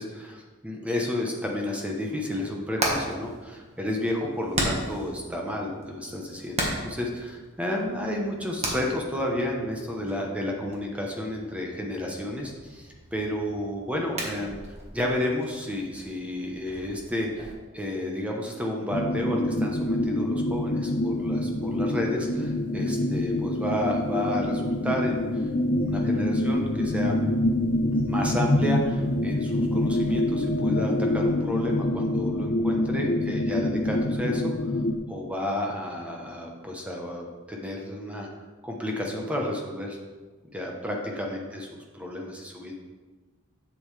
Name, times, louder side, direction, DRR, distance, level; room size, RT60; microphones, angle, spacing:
voice 1, 0.0-14.6 14.9-25.5 25.7-27.1 28.0-34.7 35.1-38.3 38.6-40.0 40.5-41.7 41.9-42.7, left 1 dB, 5° right, 0 dB, 0.9 m, -31 dB
Hammer, 2.3-17.5, right 1 dB, 30° right, 1.5 m, -36 dB
sound 1, 18.9-35.0, left 1 dB, 40° left, 0.6 m, -26 dB
7.9 x 7.5 x 3.3 m, 1.3 s
head